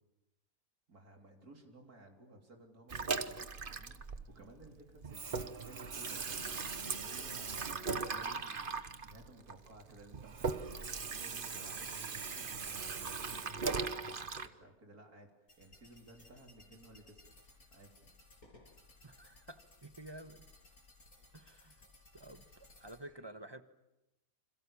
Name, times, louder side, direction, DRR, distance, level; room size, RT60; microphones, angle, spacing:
voice 1, 0.9-6.3 6.8-8.7 9.0-15.3 15.6-17.2 17.7-18.1, right 1 dB, 85° right, 2 dB, 4.0 m, -57 dB
Water tap faucet / Sink (filling or washing), 2.9-4.7 5.0-14.5, right 4 dB, 40° right, 1.2 m, -39 dB
sound 1, 15.5-23.0, left 2 dB, 75° left, 7.0 m, -61 dB
voice 2, 19.0-20.5 21.3-21.9 22.1-23.6, right 1 dB, 20° right, 10 dB, 1.3 m, -51 dB
29.5 x 27.0 x 7.2 m, 0.92 s
omnidirectional pair, 1.6 m